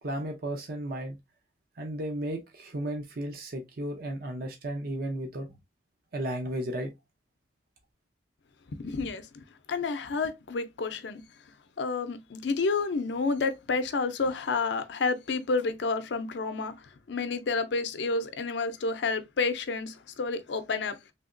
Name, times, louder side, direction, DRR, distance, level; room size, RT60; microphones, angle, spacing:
voice 1, 0.0-1.2 1.8-5.5 6.1-6.9, right 1 dB, 55° right, 0.6 m, -34 dB
voice 2, 8.7-11.2 11.8-21.0, left 4 dB, 85° left, 0.5 m, -30 dB
3.3 x 2.8 x 2.5 m
head